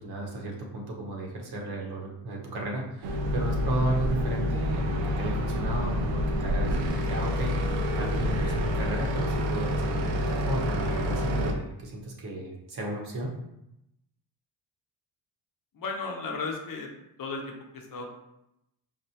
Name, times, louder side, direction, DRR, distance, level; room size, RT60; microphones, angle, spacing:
voice 1, 0.0-13.3, right 2 dB, 55° right, -1 dB, 1.0 m, -34 dB
sound 1, 3.0-11.5, left 1 dB, 80° right, 0.6 m, -28 dB
voice 2, 15.7-16.9 17.2-18.1, left 4 dB, 45° left, 1 dB, 0.7 m, -35 dB
4.2 x 2.0 x 2.8 m, 0.85 s
cardioid pair, 70°, 46 cm